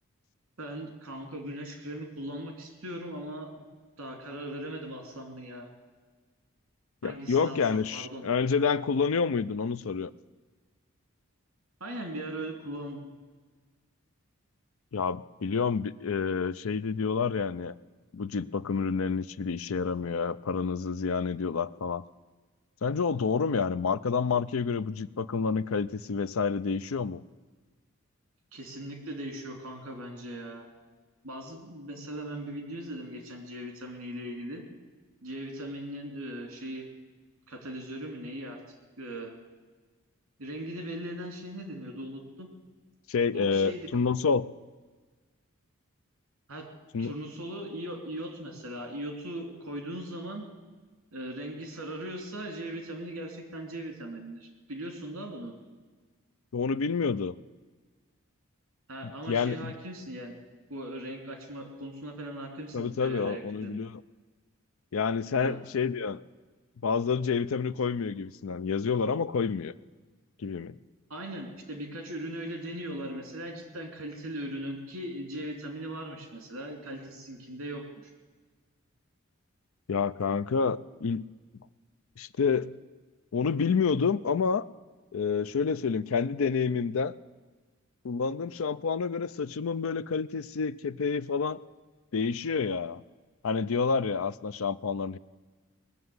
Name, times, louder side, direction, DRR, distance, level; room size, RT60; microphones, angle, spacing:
voice 1, 0.6-3.6 4.0-5.7 7.0-8.2 11.8-13.1 28.5-30.7 31.2-34.6 35.2-36.9 37.5-38.6 39.0-39.4 40.4-42.5 43.3-43.9 46.5-46.7 47.0-50.4 51.1-55.5 58.9-60.3 60.7-63.8 65.4-65.6 71.1-77.8, right 1 dB, 65° right, 3 dB, 2.9 m, -39 dB
voice 2, 7.0-10.1 14.9-17.7 18.1-22.0 22.8-27.2 43.1-44.5 46.9-47.1 56.5-57.3 59.0-59.7 62.7-64.0 64.9-66.2 66.8-69.7 70.4-70.8 79.9-81.2 82.2-82.7 83.3-84.7 85.1-87.1 88.0-91.6 92.1-93.0 93.4-95.2, left 5 dB, 70° left, 14 dB, 0.5 m, -28 dB
20.0 x 7.0 x 9.5 m, 1.4 s
head